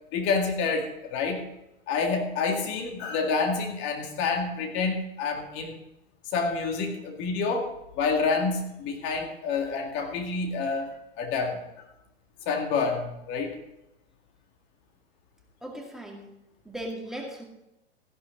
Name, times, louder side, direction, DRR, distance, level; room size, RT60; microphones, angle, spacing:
voice 1, 0.1-1.4 1.9-5.8 6.3-10.9 11.2-11.9 12.5-13.6, left 4 dB, 40° left, 3 dB, 2.1 m, -28 dB
voice 2, 15.6-16.3 16.7-17.5, right 1 dB, ahead, 0 dB, 2.2 m, -37 dB
14.5 x 11.5 x 4.0 m, 0.89 s
figure-of-eight pair, 95°, 31 cm